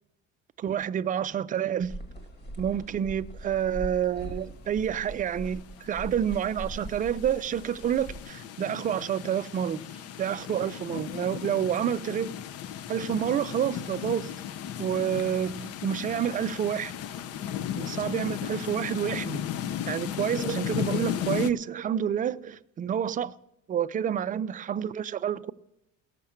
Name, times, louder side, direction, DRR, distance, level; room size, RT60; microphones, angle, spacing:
voice 1, 0.6-1.9 2.6-9.8 10.2-12.3 12.9-14.3 14.8-16.9 17.8-19.5 19.9-23.4 23.7-25.5, right 9 dB, 30° right, 0.4 m, -29 dB
sound 1, 1.8-8.2, right 1 dB, 35° left, 1.6 m, -41 dB
sound 2, 5.5-21.5, left 10 dB, 55° left, 0.6 m, -35 dB
17.5 x 6.6 x 7.1 m
cardioid pair, 145°, 30 cm